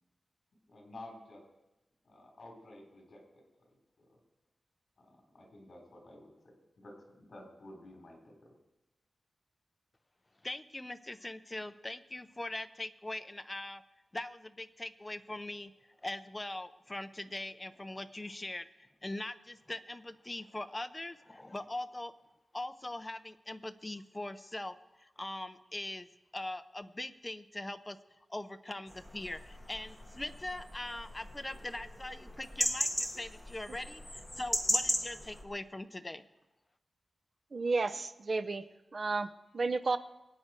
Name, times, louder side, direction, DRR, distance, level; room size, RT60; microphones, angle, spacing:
voice 1, 0.7-1.4 2.0-3.4 4.0-4.2 5.0-8.6, left 1 dB, 50° left, 1 dB, 4.0 m, -52 dB
voice 2, 10.4-13.8 14.1-15.7 16.0-22.1 22.5-26.1 26.3-28.0 28.3-36.3, left 1 dB, 20° left, 11 dB, 0.6 m, -41 dB
sound 1, 28.9-35.4, equal, ahead, 1.8 m, -37 dB
voice 3, 37.5-38.6 38.9-40.0, right 3 dB, 45° right, 12 dB, 0.6 m, -32 dB
24.0 x 9.0 x 4.5 m, 1.0 s
wide cardioid pair, 125°, 0 cm